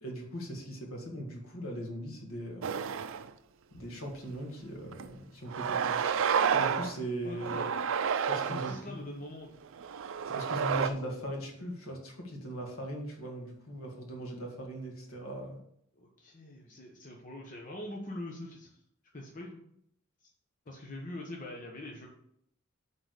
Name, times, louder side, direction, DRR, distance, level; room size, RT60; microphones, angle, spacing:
voice 1, 0.0-2.7 3.7-6.0 6.5-7.7 8.3-9.1 10.3-15.6, right 1 dB, 70° left, 1 dB, 2.0 m, -39 dB
sound 1, 2.6-3.3 3.8-3.9 4.9-5.1 5.5-7.0 7.4-8.8 9.6-10.9, right 7 dB, 65° right, 0.4 m, -30 dB
voice 2, 6.4-6.9 7.2-7.9 8.3-9.6 15.9-18.7 19.1-19.6 20.7-22.1, left 1 dB, 40° left, -1 dB, 1.0 m, -43 dB
7.9 x 3.9 x 6.5 m, 0.72 s
head